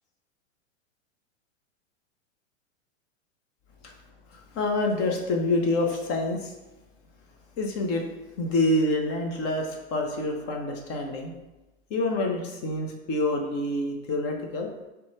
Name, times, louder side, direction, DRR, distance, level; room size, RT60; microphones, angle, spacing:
voice 1, 4.3-6.5 7.6-8.0 8.4-11.3 11.9-14.7, left 2 dB, 35° left, 2 dB, 0.7 m, -27 dB
5.3 x 2.2 x 3.1 m, 1.1 s
hypercardioid pair, 120°, 40 cm